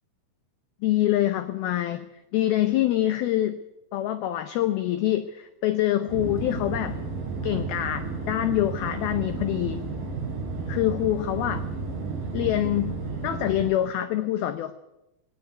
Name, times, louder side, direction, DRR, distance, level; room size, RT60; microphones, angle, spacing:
voice 1, 0.8-2.1 2.3-3.6 3.9-7.0 7.4-9.8 10.7-11.6 12.3-14.7, left 13 dB, 90° left, 11 dB, 2.1 m, -25 dB
sound 1, 6.1-13.7, right 4 dB, 45° right, 6.3 m, -32 dB
18.0 x 17.5 x 9.5 m, 0.90 s
omnidirectional pair, 5.5 m